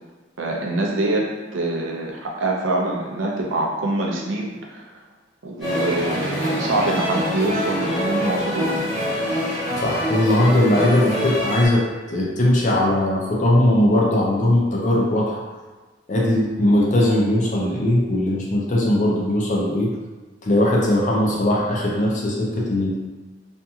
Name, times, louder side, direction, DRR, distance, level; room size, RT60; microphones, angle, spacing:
voice 1, 0.4-1.3 1.5-4.8 5.4-8.8, right 2 dB, 90° right, -1 dB, 0.5 m, -24 dB
sound 1, 5.6-11.7, equal, ahead, 1.1 m, -25 dB
voice 2, 9.8-15.4 16.1-19.9 20.4-23.0, left 1 dB, 40° left, -3 dB, 0.5 m, -19 dB
2.8 x 2.5 x 2.3 m, 1.3 s
head